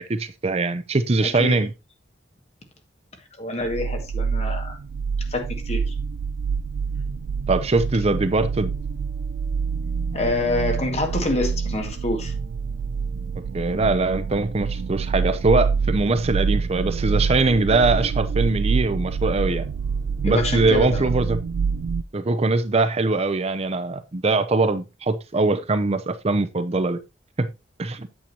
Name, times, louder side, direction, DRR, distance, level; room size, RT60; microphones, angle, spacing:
voice 1, 0.0-1.7 7.5-8.7 13.5-19.7 20.2-21.4 22.1-27.0 27.4-27.5 27.8-28.1, right 3 dB, 35° right, 0.6 m, -22 dB
voice 2, 1.2-1.6 3.4-4.8 5.3-5.9 10.1-12.3 20.2-21.1, left 2 dB, 35° left, 2.0 m, -26 dB
sound 1, 3.6-22.0, right 5 dB, 80° right, 0.4 m, -26 dB
8.7 x 8.5 x 2.9 m
head